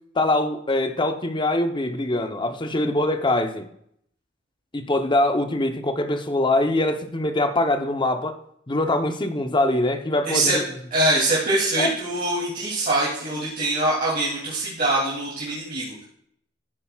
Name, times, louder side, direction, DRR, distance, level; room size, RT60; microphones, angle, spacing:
voice 1, 0.1-3.7 4.7-8.4 8.7-10.6 11.8-11.9, left 1 dB, 25° left, 7 dB, 0.8 m, -23 dB
voice 2, 10.2-10.6 10.9-16.0, right 2 dB, 50° right, -7 dB, 2.9 m, -23 dB
15.5 x 9.0 x 2.4 m, 0.70 s
head